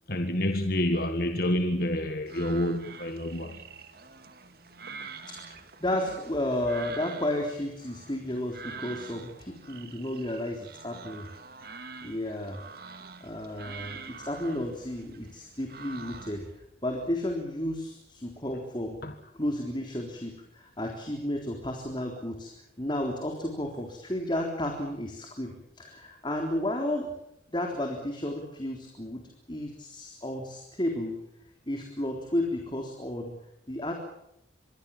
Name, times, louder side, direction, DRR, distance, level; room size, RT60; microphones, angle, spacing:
voice 1, 0.1-3.6 19.0-19.1, left 1 dB, 50° left, 6 dB, 1.7 m, -28 dB
sound 1, 2.3-16.6, right 5 dB, 55° right, 2.3 m, -46 dB
voice 2, 5.3-11.3 12.0-16.5 16.8-19.0 19.3-22.5 22.8-27.1 27.5-31.2 31.7-33.3 33.7-33.9, left 1 dB, 25° left, 2 dB, 3.7 m, -33 dB
26.5 x 22.5 x 7.3 m, 0.82 s
head